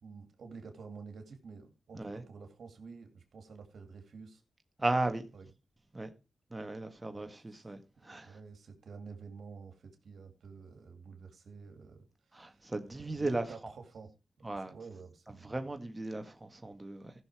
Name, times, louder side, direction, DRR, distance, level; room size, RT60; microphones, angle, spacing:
voice 1, 0.0-4.4 5.3-5.5 7.1-7.6 8.2-14.1 14.5-15.6, right 5 dB, 75° right, 2.4 m, -50 dB
voice 2, 4.8-5.2 5.9-6.1 6.5-8.4 12.3-13.7 14.4-14.7 15.4-17.1, right 2 dB, 25° right, 1.7 m, -36 dB
15.0 x 6.5 x 4.8 m
cardioid pair, 55°, 0 cm